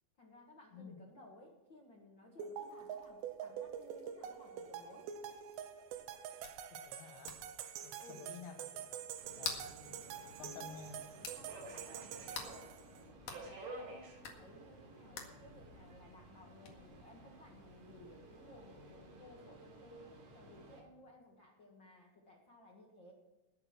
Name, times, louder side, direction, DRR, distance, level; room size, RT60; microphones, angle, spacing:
voice 1, 0.2-5.1 8.0-8.3 10.3-10.9 11.3-12.8 13.3-23.1, left 1 dB, 75° left, 0 dB, 1.0 m, -59 dB
sound 1, 2.4-13.0, right 8 dB, 80° right, 3.0 m, -46 dB
sound 2, 2.6-19.0, left 6 dB, 55° left, 3.1 m, -53 dB
voice 2, 6.8-7.4 7.8-8.9 9.3-9.7 10.4-11.0, left 7 dB, 90° left, 6 dB, 3.6 m, -51 dB
Subway metro underground, 9.2-20.8, right 2 dB, 60° right, 4.5 m, -54 dB
20.5 x 7.0 x 6.0 m, 1.1 s
omnidirectional pair, 5.1 m